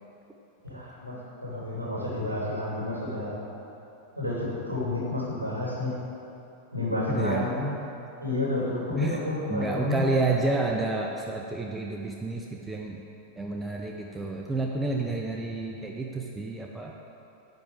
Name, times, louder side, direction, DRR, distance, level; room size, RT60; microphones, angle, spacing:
voice 1, 0.6-1.2 1.4-3.4 4.2-5.9 6.7-7.7 8.2-10.1, left 2 dB, 85° right, -6 dB, 2.8 m, -30 dB
voice 2, 7.1-7.5 9.0-9.2 9.5-13.0 13.4-17.0, right 2 dB, 10° right, 0 dB, 0.7 m, -29 dB
10.5 x 5.4 x 7.8 m, 3.0 s
figure-of-eight pair, 90°, 0 cm